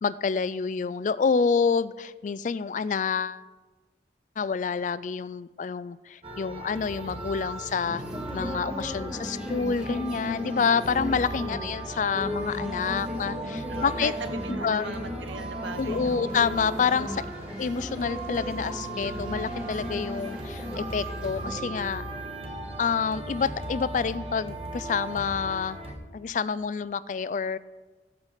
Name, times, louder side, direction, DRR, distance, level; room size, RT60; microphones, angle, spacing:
voice 1, 0.0-3.4 4.4-8.0 8.3-14.1 14.6-14.9 15.8-17.3 17.6-22.1 22.8-25.8 26.1-27.6, left 5 dB, 40° left, 17 dB, 0.3 m, -28 dB
sound 1, 6.2-25.9, right 2 dB, 30° right, 1.5 m, -37 dB
sound 2, 6.9-25.3, left 1 dB, 5° right, 0.9 m, -37 dB
voice 2, 13.7-16.2, right 3 dB, 85° right, 9 dB, 1.0 m, -38 dB
sound 3, 15.9-22.0, right 1 dB, 50° right, 2.4 m, -53 dB
14.0 x 8.3 x 4.9 m, 1.3 s
head